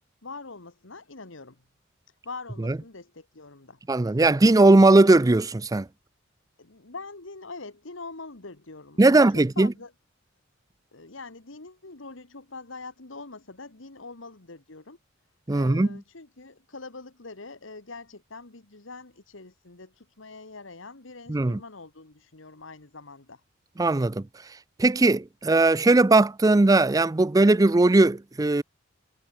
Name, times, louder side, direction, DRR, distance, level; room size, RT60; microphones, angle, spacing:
voice 1, 0.2-1.6 2.2-3.8 6.6-9.9 10.9-15.0 15.5-23.4, left 3 dB, 70° left, 1.9 m, -43 dB
voice 2, 3.9-5.9 9.0-9.7 15.5-16.0 21.3-21.6 23.8-24.3 24.8-28.6, right 2 dB, 20° right, 0.4 m, -19 dB
head